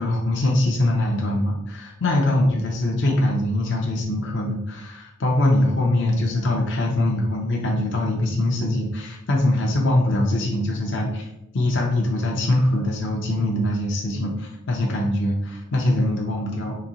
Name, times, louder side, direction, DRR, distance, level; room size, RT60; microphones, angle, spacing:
voice 1, 0.0-11.3 11.5-16.8, left 1 dB, 60° left, -1 dB, 0.5 m, -22 dB
3.8 x 2.6 x 2.9 m, 0.87 s
head